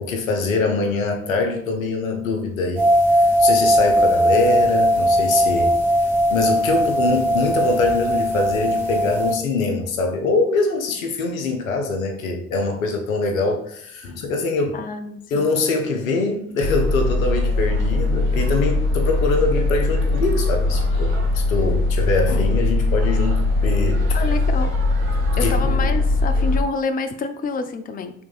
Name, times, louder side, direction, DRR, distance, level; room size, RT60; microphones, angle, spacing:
voice 1, 0.0-5.7 6.3-14.8 15.3-24.0 25.3-25.9, left 3 dB, 85° left, 4 dB, 0.7 m, -23 dB
sound 1, 2.8-9.3, equal, 5° right, 1.6 m, -19 dB
voice 2, 14.7-15.4 24.1-24.7 25.4-28.1, left 4 dB, 20° left, 8 dB, 0.5 m, -27 dB
sound 2, 16.6-26.6, left 2 dB, 85° right, 0.7 m, -20 dB
5.9 x 3.5 x 2.4 m, 0.70 s
figure-of-eight pair, 45°, 40 cm